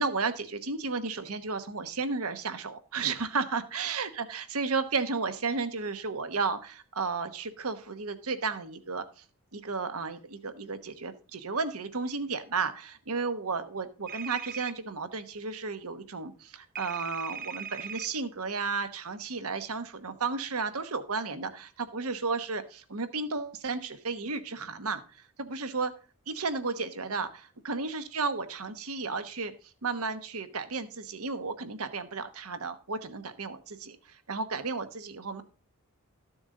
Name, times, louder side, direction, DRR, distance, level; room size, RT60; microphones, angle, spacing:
voice 1, 0.0-9.2 9.5-25.9 26.3-29.5 29.8-35.4, right 4 dB, 80° right, 10 dB, 1.1 m, -33 dB
sound 1, 14.1-14.7 16.8-18.1, right 7 dB, 40° right, 0.7 m, -39 dB
13.5 x 7.0 x 3.8 m, 0.36 s
head